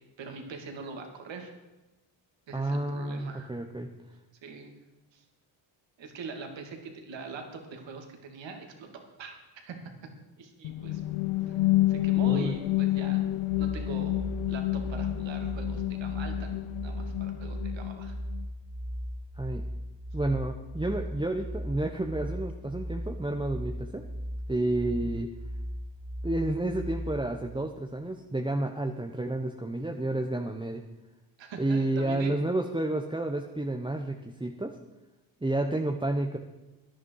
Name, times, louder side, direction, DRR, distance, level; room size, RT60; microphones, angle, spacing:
voice 1, 0.2-1.5 2.5-3.5 4.4-4.7 5.1-5.2 6.0-8.9 9.2-9.4 9.6-9.8 10.4-11.0 11.9-13.2 13.6-18.1 31.4-32.4, right 4 dB, 70° right, 4 dB, 2.8 m, -42 dB
voice 2, 2.5-3.9 12.3-12.6 19.4-19.6 20.1-24.0 24.5-25.3 26.2-30.8 31.6-34.8 35.4-36.4, right 2 dB, 10° right, 3 dB, 1.1 m, -30 dB
sound 1, 10.6-18.4, left 16 dB, 80° left, 0.9 m, -29 dB
sound 2, 13.5-27.3, equal, 5° left, 2.5 m, -37 dB
16.5 x 11.0 x 4.8 m, 1.1 s
cardioid pair, 75°, 47 cm